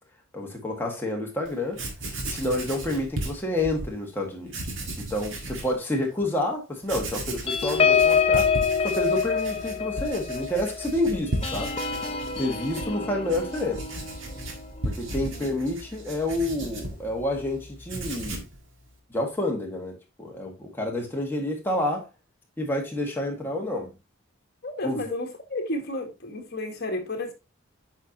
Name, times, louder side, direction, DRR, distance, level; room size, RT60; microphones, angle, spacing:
voice 1, 0.3-1.8 2.2-4.5 5.0-8.5 8.8-11.7 12.4-13.8 14.8-18.4 19.1-22.1 22.6-23.9 24.8-25.0, left 1 dB, 10° left, 1.7 m, -29 dB
Writing, 1.4-1.5 1.7-3.9 4.5-5.7 6.2-6.3 6.8-17.5 17.8-18.6, right 1 dB, 65° right, 1.7 m, -35 dB
sound 1, 7.5-16.4 16.8-17.0 17.3-17.6, left 6 dB, 30° left, 0.8 m, -27 dB
voice 2, 24.6-27.3, left 1 dB, 50° left, 1.6 m, -32 dB
8.0 x 5.5 x 2.8 m
head